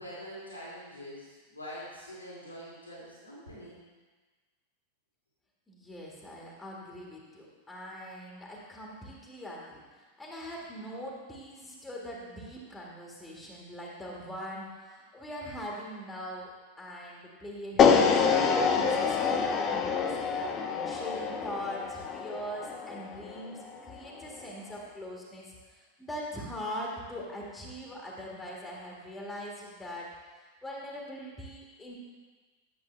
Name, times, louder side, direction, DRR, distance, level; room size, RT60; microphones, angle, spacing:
voice 1, 0.0-3.8, equal, 85° left, -7 dB, 2.7 m, -44 dB
voice 2, 5.7-16.5 16.8-20.2 20.7-31.9, equal, 10° left, -3 dB, 1.8 m, -42 dB
sound 1, 17.8-24.0, left 6 dB, 30° left, 0.8 m, -26 dB
11.0 x 7.6 x 3.3 m, 1.3 s
figure-of-eight pair, 90°, 0 cm